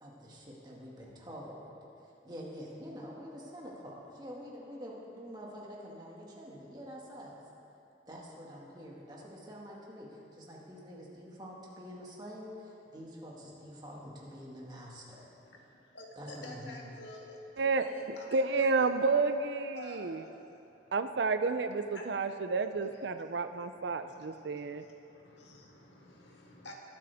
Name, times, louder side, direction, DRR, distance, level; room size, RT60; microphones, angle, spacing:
voice 1, 0.0-1.7 2.2-7.4 8.1-15.2 16.2-16.9, equal, 25° right, -4 dB, 2.0 m, -46 dB
voice 2, 15.9-17.4 17.8-18.9 19.7-20.2 20.6-20.9 21.9-22.0 23.7-24.8 25.1-26.7, left 2 dB, 75° left, -1 dB, 1.8 m, -50 dB
voice 3, 18.3-20.2 20.9-24.8, right 4 dB, 70° right, 9 dB, 0.5 m, -30 dB
21.5 x 8.6 x 3.5 m, 2.8 s
head